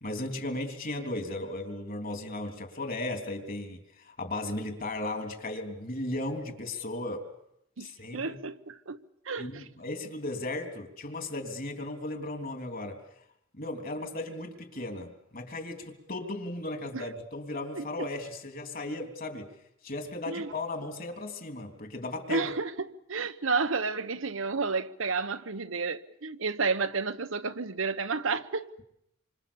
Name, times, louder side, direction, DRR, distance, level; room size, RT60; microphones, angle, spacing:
voice 1, 0.0-7.2 7.8-8.4 9.4-13.0 13.5-19.5 19.8-22.5, left 2 dB, 45° left, 3.3 m, -36 dB
voice 2, 7.8-9.7 16.9-17.0 17.7-18.1 20.3-20.5 22.3-22.7 23.1-28.7, right 4 dB, 75° right, 1.1 m, -31 dB
27.5 x 25.5 x 7.1 m
head